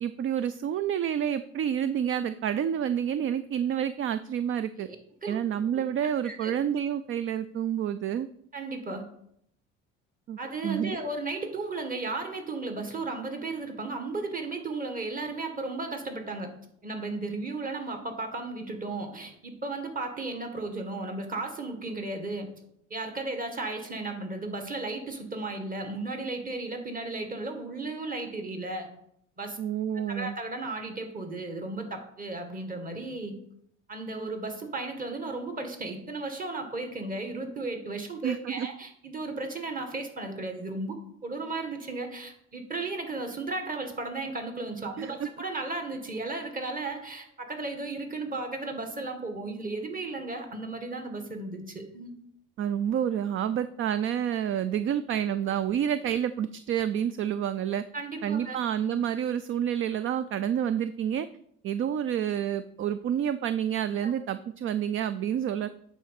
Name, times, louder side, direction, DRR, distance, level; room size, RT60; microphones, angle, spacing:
voice 1, 0.0-4.9 5.3-8.3 10.3-10.4 10.6-11.0 29.6-30.3 38.2-38.7 45.0-45.1 52.6-57.8 58.2-61.3 61.6-65.7, right 9 dB, 45° right, 13 dB, 0.4 m, -29 dB
voice 2, 8.5-9.0 10.4-16.5 16.8-22.5 22.9-28.9 29.4-29.6 30.1-33.3 33.9-52.1 57.9-58.6 64.0-64.1, right 3 dB, 30° right, 5 dB, 1.9 m, -35 dB
8.9 x 4.2 x 6.5 m, 0.72 s
cardioid pair, 100°, 29 cm